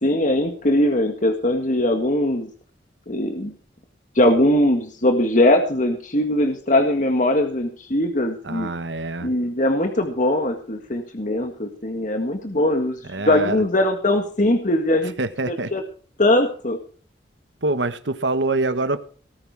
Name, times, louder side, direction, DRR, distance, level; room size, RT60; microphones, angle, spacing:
voice 1, 0.0-2.5 3.1-3.5 4.2-8.7 9.2-15.1 15.5-15.8 16.2-16.8, left 1 dB, 45° left, 5 dB, 1.8 m, -20 dB
voice 2, 8.4-9.3 13.1-13.6 15.2-15.7 17.6-19.0, right 2 dB, 85° right, 11 dB, 1.4 m, -25 dB
19.0 x 9.9 x 4.8 m, 0.42 s
head